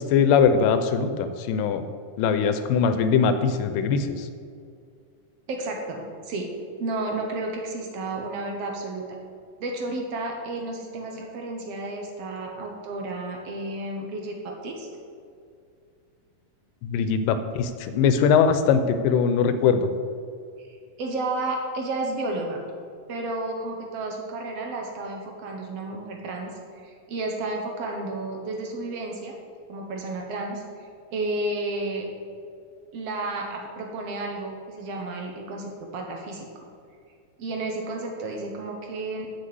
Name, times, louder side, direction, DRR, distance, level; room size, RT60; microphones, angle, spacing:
voice 1, 0.0-1.9 2.2-4.3 16.8-19.9, left 6 dB, 85° left, 10 dB, 2.3 m, -21 dB
voice 2, 5.5-6.5 6.8-9.2 9.6-14.9 20.6-22.6 23.1-26.5 26.8-29.3 29.7-32.1 32.9-36.5 37.4-39.3, right 2 dB, 65° right, 1 dB, 1.7 m, -32 dB
7.4 x 6.5 x 7.7 m, 2.3 s
omnidirectional pair, 3.9 m